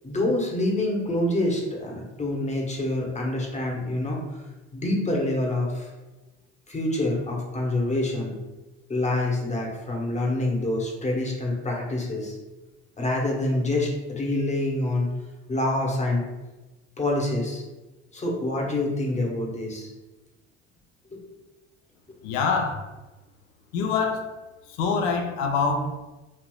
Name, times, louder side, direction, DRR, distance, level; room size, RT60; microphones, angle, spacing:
voice 1, 0.0-4.2 4.7-5.9 6.7-8.3 8.9-12.4 13.0-15.1 15.5-16.2 17.0-17.6 18.1-19.9 21.1-21.2, left 1 dB, 20° left, -1 dB, 0.9 m, -26 dB
voice 2, 22.2-22.9 23.7-24.4 24.7-26.0, left 5 dB, 75° left, 4 dB, 0.6 m, -25 dB
3.2 x 2.8 x 2.2 m, 1.1 s
hypercardioid pair, 70°, 34 cm